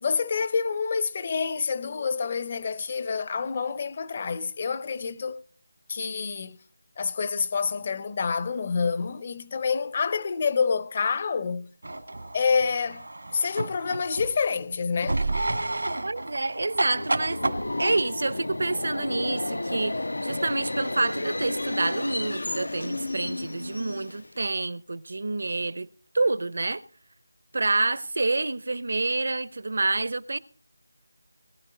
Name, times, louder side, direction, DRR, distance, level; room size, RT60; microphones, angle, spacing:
voice 1, 0.0-5.4 5.9-6.6 7.0-11.7 12.3-13.1 13.3-15.2, left 5 dB, 30° left, 0.6 m, -27 dB
sound 1, 11.8-14.4 15.0-17.6, right 2 dB, 85° right, 1.8 m, -30 dB
voice 2, 16.0-17.4 17.8-25.9 26.1-26.8 27.5-30.4, right 3 dB, 60° right, 0.7 m, -28 dB
Subway metro underground, 16.7-24.4, left 2 dB, 80° left, 0.7 m, -32 dB
20.5 x 10.0 x 3.9 m
figure-of-eight pair, 170°, 0 cm